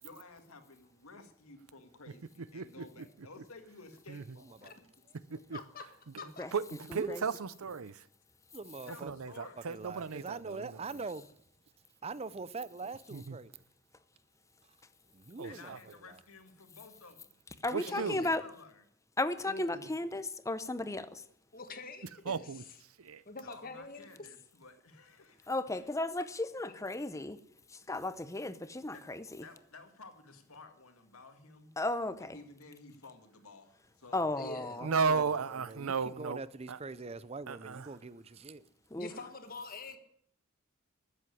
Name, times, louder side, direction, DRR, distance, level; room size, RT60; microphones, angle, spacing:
voice 1, 0.0-4.7 7.9-8.1 8.8-9.7 15.4-17.4 17.8-18.8 23.4-25.8 27.8-27.9 28.9-29.0 29.4-31.7 32.2-34.3 34.5-34.8, left 3 dB, 90° left, 2.0 m, -54 dB
voice 2, 2.5-2.8 4.1-4.2 5.3-5.6 6.1-8.0 8.9-11.0 13.1-13.4 15.4-15.8 17.7-18.2 22.3-22.6 23.0-23.2 34.8-36.4 36.7-36.8 37.5-37.9, right 5 dB, 80° right, 0.6 m, -35 dB
voice 3, 5.5-5.9 6.2-6.5 17.9-18.3 19.5-19.9 21.5-22.5 23.3-24.1 34.4-34.8 39.0-40.0, left 3 dB, 40° left, 1.7 m, -44 dB
voice 4, 6.9-7.2 8.5-9.1 9.7-11.3 12.0-13.6 15.1-15.8 34.8-38.7, right 3 dB, 30° right, 0.5 m, -43 dB
voice 5, 17.6-18.4 19.2-21.2 25.5-27.4 27.7-29.2 31.8-32.4 34.1-34.9 38.9-39.1, left 2 dB, 15° left, 0.7 m, -35 dB
13.5 x 7.6 x 9.8 m
head